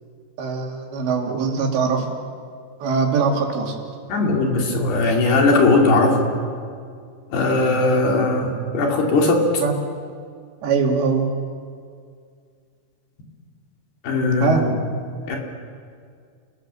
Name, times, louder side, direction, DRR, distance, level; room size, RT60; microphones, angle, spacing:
voice 1, 0.4-2.1 2.8-3.8 9.6-9.7 10.6-11.3 14.4-14.7, right 5 dB, 90° right, 1 dB, 4.9 m, -21 dB
voice 2, 4.1-6.2 7.3-9.4 14.0-14.6 15.3-15.4, left 3 dB, 70° left, 1 dB, 4.9 m, -18 dB
30.0 x 18.0 x 7.7 m, 2.2 s
omnidirectional pair, 4.9 m